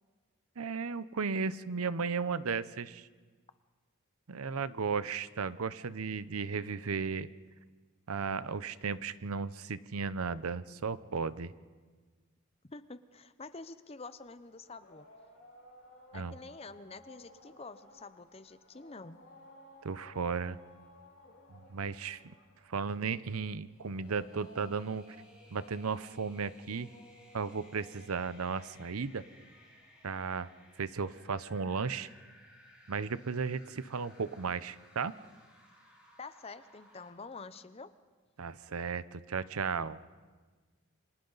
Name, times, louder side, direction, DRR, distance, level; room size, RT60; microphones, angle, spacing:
voice 1, 0.6-3.1 4.3-7.3 8.1-11.5 16.1-16.3 19.8-20.6 21.5-22.3 22.7-25.0 25.5-26.9 27.3-29.2 30.0-30.5 30.8-32.1 32.9-35.1 38.4-40.0, right 5 dB, 80° right, 16 dB, 0.7 m, -35 dB
voice 2, 12.7-15.1 16.1-19.2 36.2-37.9, left 3 dB, 25° left, 13 dB, 0.6 m, -47 dB
sound 1, 14.1-30.4, left 1 dB, 60° left, 7.0 m, -59 dB
sound 2, 23.7-37.1, left 1 dB, 5° right, 5.0 m, -61 dB
29.0 x 25.5 x 4.0 m, 1.4 s
head